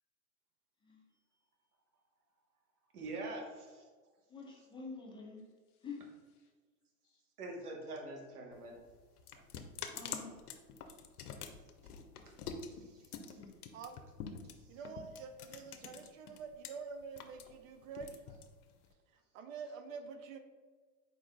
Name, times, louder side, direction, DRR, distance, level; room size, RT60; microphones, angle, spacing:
voice 1, 2.9-3.9 7.4-8.8 9.3-9.4 12.3-12.4 12.7-13.0 13.3-13.4, right 2 dB, 80° right, 1 dB, 1.0 m, -44 dB
voice 2, 4.3-5.4 5.8-6.0 9.9-10.3 13.3-13.5, left 4 dB, 10° left, -2 dB, 0.5 m, -47 dB
voice 3, 5.4-6.5 7.0-7.2 10.9-11.2 18.7-18.9 19.6-19.7, left 7 dB, 50° left, 1 dB, 1.1 m, -80 dB
sound 1, 8.5-16.7 17.0-18.9, left 6 dB, 85° left, 0.6 m, -46 dB
voice 4, 13.7-14.3 14.7-18.2 19.3-20.4, right 5 dB, 60° right, 7 dB, 0.5 m, -47 dB
4.5 x 2.4 x 3.3 m, 1.4 s
hypercardioid pair, 100°, 44 cm